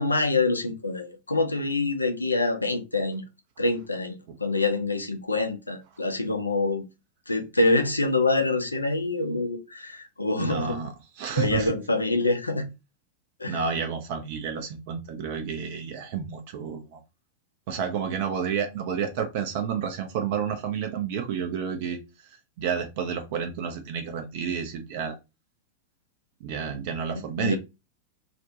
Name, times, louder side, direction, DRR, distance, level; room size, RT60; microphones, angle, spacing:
voice 1, 0.0-3.2 3.6-6.8 7.3-10.8 11.3-12.7 13.4-13.6 27.1-27.6, left 3 dB, 90° left, 0.4 m, -26 dB
voice 2, 10.4-11.7 13.5-17.0 17.7-22.0 22.6-25.2 26.4-27.6, right 7 dB, 55° right, 0.4 m, -30 dB
2.4 x 2.1 x 2.7 m
figure-of-eight pair, 90°, 0 cm